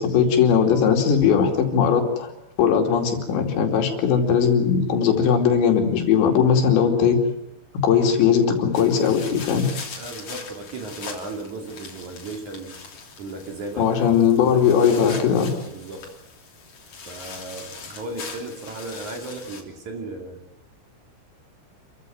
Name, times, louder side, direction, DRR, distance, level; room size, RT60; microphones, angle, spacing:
voice 1, 0.0-2.3 2.6-7.2 7.8-9.7 13.8-15.5, left 7 dB, 75° left, 3 dB, 4.8 m, -19 dB
sound 1, 8.7-19.6, left 5 dB, 40° left, 3.9 m, -41 dB
voice 2, 10.0-12.8 13.2-13.9 14.4-16.1 17.0-20.4, right 2 dB, 45° right, 3 dB, 3.4 m, -36 dB
28.0 x 15.0 x 9.3 m, 0.84 s
omnidirectional pair, 5.3 m